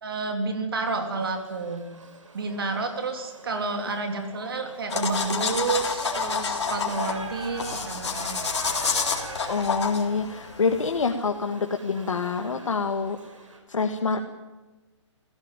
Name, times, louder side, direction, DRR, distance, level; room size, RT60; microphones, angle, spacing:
voice 1, 0.0-1.8 2.3-8.4, right 4 dB, 45° right, 5 dB, 3.3 m, -30 dB
Shout / Livestock farm animals working animals, 1.0-13.6, right 2 dB, 80° right, 5.4 m, -44 dB
sound 1, 4.9-11.1, left 5 dB, 60° left, 3.9 m, -29 dB
voice 2, 9.5-13.2 13.7-14.2, left 4 dB, 85° left, 4 dB, 1.9 m, -26 dB
21.0 x 16.5 x 9.1 m, 1.2 s
hypercardioid pair, 175°, 16 cm